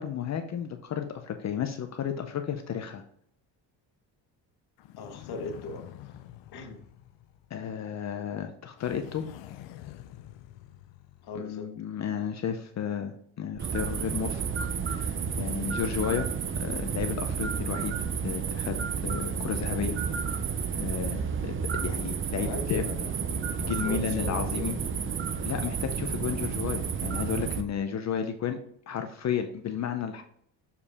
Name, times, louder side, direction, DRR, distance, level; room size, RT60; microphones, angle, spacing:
voice 1, 0.0-3.0 7.5-9.2 11.4-16.3 16.6-18.8 19.0-20.4 20.8-21.6 21.8-22.8 23.7-24.8 25.4-28.6 28.9-30.2, left 8 dB, 40° left, 6 dB, 0.6 m, -33 dB
sound 1, 4.8-7.9 8.8-11.5, left 12 dB, 75° left, 0.7 m, -47 dB
voice 2, 5.0-6.2 6.5-6.8 11.2-11.7 22.4-24.9, left 2 dB, 60° left, 4 dB, 1.5 m, -39 dB
sound 2, 13.6-27.6, right 6 dB, 30° right, 0.6 m, -31 dB
6.9 x 4.8 x 3.5 m, 0.68 s
cardioid pair, 125°, 43 cm